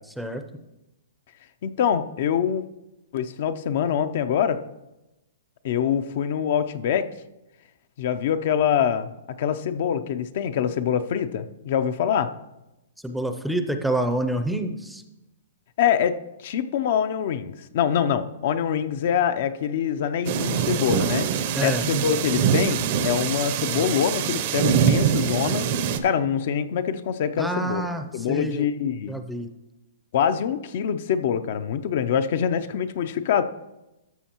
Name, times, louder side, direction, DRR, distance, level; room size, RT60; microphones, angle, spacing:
voice 1, 1.6-2.6 3.1-4.6 5.6-7.1 8.0-9.1 9.4-12.3 15.8-16.1 16.4-21.3 21.6-25.6 26.0-27.9 28.1-29.2 30.1-33.4, left 8 dB, 50° left, 10 dB, 0.5 m, -24 dB
voice 2, 13.0-15.0 21.5-21.9 27.4-28.7 29.1-29.5, right 1 dB, ahead, 6 dB, 0.5 m, -27 dB
sound 1, 20.3-26.0, right 8 dB, 45° right, 0.6 m, -24 dB
12.5 x 6.4 x 2.9 m, 0.96 s
hypercardioid pair, 155°, 0 cm